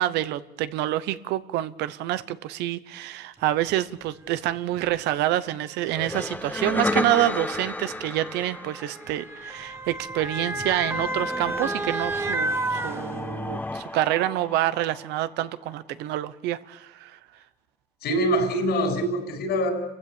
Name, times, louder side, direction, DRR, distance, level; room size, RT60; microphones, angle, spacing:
voice 1, 0.0-17.2, right 14 dB, 90° right, 1.0 m, -27 dB
Motor vehicle (road) / Siren, 3.7-3.8 4.8-5.0 6.0-13.6 14.1-14.2, right 2 dB, 15° right, 1.3 m, -32 dB
sound 1, 5.9-9.5 10.9-15.5, left 2 dB, 10° left, 1.3 m, -33 dB
voice 2, 18.0-19.7, equal, 75° left, 7.6 m, -24 dB
29.0 x 15.5 x 8.7 m
cardioid pair, 110°, 17 cm